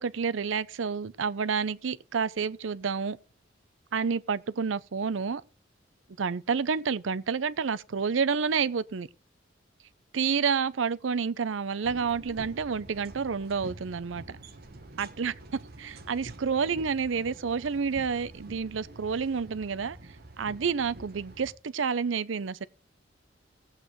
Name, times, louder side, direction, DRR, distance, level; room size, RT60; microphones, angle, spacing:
voice 1, 0.0-3.2 3.9-5.4 6.2-9.1 10.1-14.4 15.0-20.0 20.4-22.7, right 6 dB, 85° right, 0.6 m, -29 dB
sound 1, 11.8-21.5, right 2 dB, 55° right, 1.1 m, -47 dB
18.5 x 8.1 x 3.1 m
head